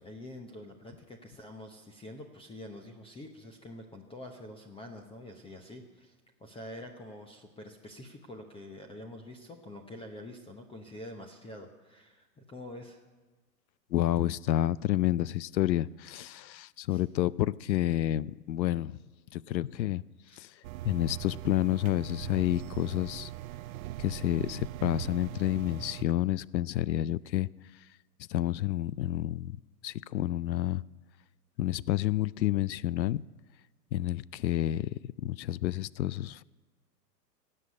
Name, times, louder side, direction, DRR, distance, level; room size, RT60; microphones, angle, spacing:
voice 1, 0.0-13.0 16.9-17.0 20.3-20.4, left 1 dB, 10° left, 5 dB, 0.9 m, -46 dB
voice 2, 13.9-19.0 19.3-20.0 20.3-20.5 20.8-23.3 24.0-27.5 28.3-30.8 31.6-33.2 33.9-36.4, left 14 dB, 90° left, 22 dB, 0.6 m, -29 dB
sound 1, 20.6-26.0, right 15 dB, 55° right, 0.6 m, -41 dB
17.0 x 7.7 x 9.5 m, 1.3 s
hypercardioid pair, 115°, 50 cm